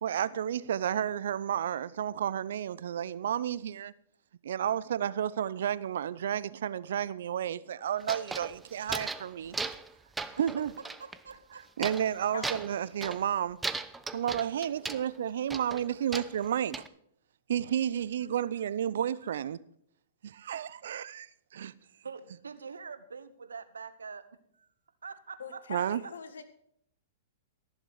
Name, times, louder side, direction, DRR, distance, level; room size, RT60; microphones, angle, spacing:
voice 1, 0.0-3.9 4.4-9.6 10.4-10.7 11.8-13.6 14.1-16.8 17.5-19.6 20.2-21.7 25.7-26.0, right 9 dB, 70° right, 0.6 m, -31 dB
sound 1, 8.0-9.3 9.5-9.9 10.2-11.2 11.8-12.1 12.4-13.3 13.6-15.0 15.5-16.9, right 3 dB, 10° right, 0.6 m, -37 dB
voice 2, 10.8-12.1 14.5-14.9 15.9-16.0 18.2-18.7 19.2-19.3 20.4-20.7 22.0-24.2 24.5-24.7 25.0-26.1, right 5 dB, 90° right, 1.1 m, -46 dB
voice 3, 25.4-26.4, left 6 dB, 80° left, 1.7 m, -42 dB
14.0 x 7.4 x 6.4 m
hypercardioid pair, 115°, 0 cm